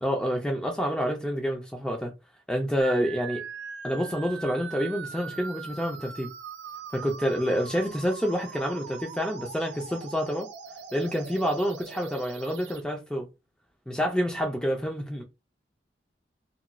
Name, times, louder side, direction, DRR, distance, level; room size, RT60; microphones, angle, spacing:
voice 1, 0.0-2.1 2.5-3.4 3.8-6.3 6.9-10.5 10.9-13.3 13.9-15.2, equal, 5° left, 0.4 m, -28 dB
sound 1, 2.8-12.8, right 6 dB, 80° right, 0.4 m, -41 dB
2.8 x 2.3 x 2.5 m
head